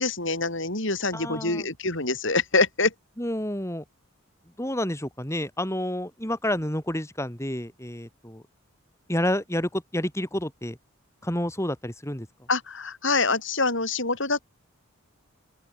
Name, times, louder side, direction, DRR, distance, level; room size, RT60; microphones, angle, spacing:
voice 1, 0.0-2.9 12.5-14.4, left 3 dB, 55° left, 6.0 m, -25 dB
voice 2, 1.1-1.7 3.2-3.8 4.6-8.4 9.1-10.8 11.2-12.3, left 1 dB, 15° left, 5.6 m, -29 dB
open air
head